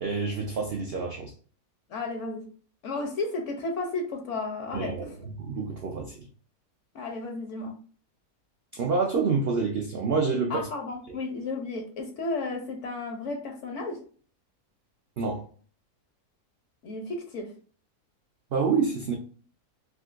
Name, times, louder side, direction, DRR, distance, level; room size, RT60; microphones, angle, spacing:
voice 1, 0.0-1.3 4.7-5.1 5.4-6.2 8.7-10.7 15.2-15.4 18.5-19.1, right 4 dB, 80° right, 0 dB, 0.5 m, -27 dB
voice 2, 1.9-2.5 2.8-5.1 6.9-7.8 10.5-14.0 16.8-17.5, left 3 dB, 65° left, 3 dB, 0.8 m, -33 dB
3.6 x 2.6 x 2.4 m, 0.42 s
omnidirectional pair, 1.7 m